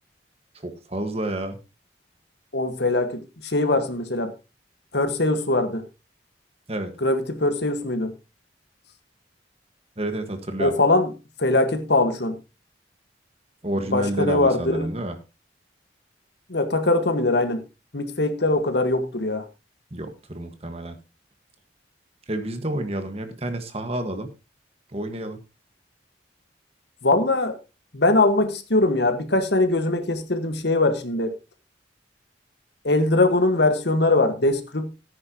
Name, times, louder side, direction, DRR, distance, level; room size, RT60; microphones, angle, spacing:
voice 1, 0.5-1.6 6.7-6.9 10.0-10.7 13.6-15.1 19.9-21.0 22.3-24.3 24.9-25.4, right 1 dB, 35° right, 1.5 m, -29 dB
voice 2, 2.5-4.3 4.9-5.8 7.0-8.1 10.6-11.1 11.4-12.4 13.9-14.9 16.5-17.6 17.9-19.5 27.0-27.6 27.9-31.4 32.8-34.9, left 2 dB, 60° left, 1.5 m, -22 dB
14.0 x 9.7 x 2.9 m
head